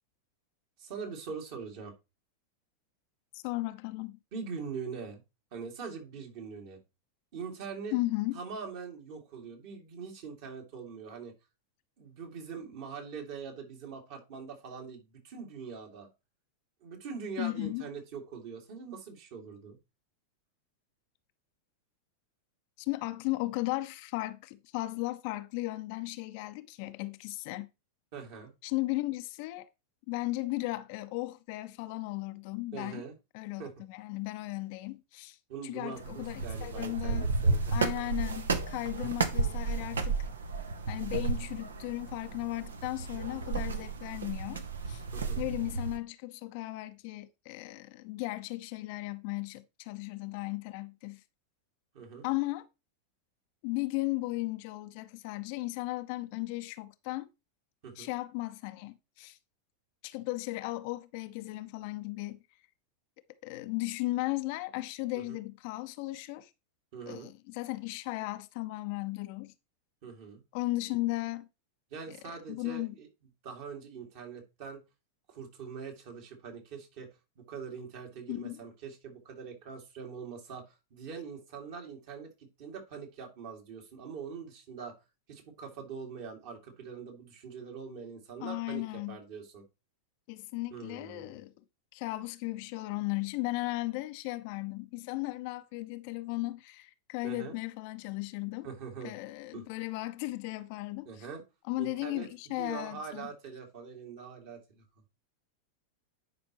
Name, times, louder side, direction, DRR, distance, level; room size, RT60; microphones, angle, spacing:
voice 1, 0.8-1.9 4.3-5.2 5.5-6.8 7.3-7.9 8.3-11.3 12.0-16.1 16.8-19.8 28.1-28.5 32.7-33.2 33.6-33.7 35.5-37.9 45.1-45.4 51.9-52.2 57.8-58.1 65.1-65.4 66.9-67.3 70.0-70.4 71.9-73.1 73.4-74.8 75.3-77.1 77.5-82.3 82.6-84.9 85.3-88.8 89.1-89.6 90.7-91.4 97.2-97.6 98.6-99.2 99.5-99.6 101.1-101.4 101.8-102.3 102.6-104.8, right 6 dB, 50° right, 2.4 m, -43 dB
voice 2, 3.3-4.2 7.9-8.4 17.4-17.9 22.8-27.7 28.6-29.7 30.1-33.0 33.3-35.4 35.6-37.3 37.7-40.3 40.9-45.0 45.4-51.2 52.2-52.7 53.6-57.3 58.0-59.4 60.0-62.4 63.4-66.5 67.1-69.5 70.5-71.5 72.1-72.2 72.5-72.9 78.3-78.6 88.4-89.2 90.3-91.6 91.9-98.7 99.0-101.3 101.7-103.3, left 20 dB, 45° left, 0.6 m, -36 dB
sound 1, 36.0-46.0, right 4 dB, 70° right, 0.9 m, -33 dB
10.5 x 5.1 x 3.0 m
figure-of-eight pair, 90°, 0 cm